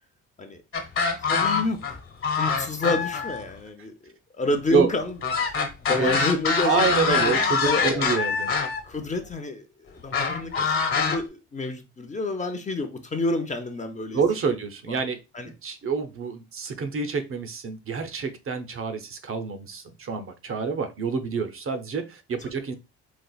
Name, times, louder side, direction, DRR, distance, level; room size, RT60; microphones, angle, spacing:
sound 1, 0.7-1.9 2.2-3.4 5.2-8.8 10.1-11.2, left 5 dB, 45° left, 1.1 m, -24 dB
voice 1, 1.3-2.0 2.4-7.4 7.6-8.1 8.8-14.2 14.9-15.0 15.3-15.5, left 2 dB, 25° left, 0.6 m, -29 dB
voice 2, 6.6-8.5 14.1-22.7, right 5 dB, 45° right, 0.7 m, -27 dB
4.2 x 2.4 x 2.3 m
cardioid pair, 90°, 30 cm